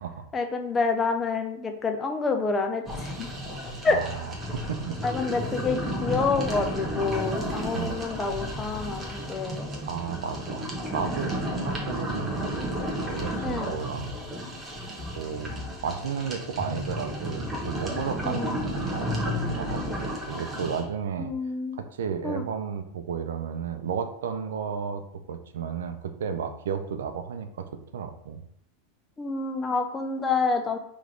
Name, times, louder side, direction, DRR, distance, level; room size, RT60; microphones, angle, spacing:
voice 1, 0.3-3.3 3.8-4.0 5.0-9.7 13.4-13.7 18.2-18.6 21.2-21.8 22.2-22.4 29.2-30.8, left 4 dB, 20° left, 5 dB, 0.6 m, -28 dB
sound 1, 2.9-20.8, equal, 20° right, 1.1 m, -32 dB
voice 2, 3.9-5.0 7.7-8.0 9.9-12.6 12.9-14.4 15.2-15.5 15.8-21.3 21.7-25.0 25.3-27.7 27.9-28.4, right 7 dB, 85° right, 8 dB, 0.5 m, -33 dB
3.2 x 3.1 x 3.8 m, 0.71 s
supercardioid pair, 125°, 0 cm